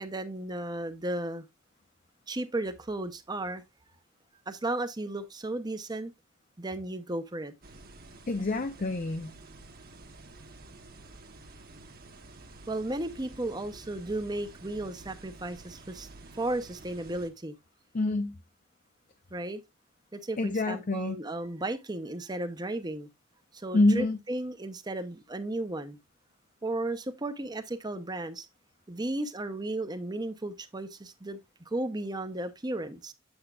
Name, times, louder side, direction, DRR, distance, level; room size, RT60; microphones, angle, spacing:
voice 1, 0.0-1.4 2.3-3.6 4.5-6.1 6.6-7.5 12.7-16.1 16.4-17.6 19.3-19.6 20.1-23.1 23.5-26.0 26.6-28.5 28.9-31.4 31.7-33.1, right 2 dB, 20° right, 0.8 m, -34 dB
sound 1, 7.6-17.3, right 2 dB, 45° right, 1.2 m, -50 dB
voice 2, 8.3-9.3 17.9-18.4 20.4-21.2 23.7-24.2, left 2 dB, 40° left, 0.5 m, -26 dB
8.0 x 7.9 x 2.4 m
head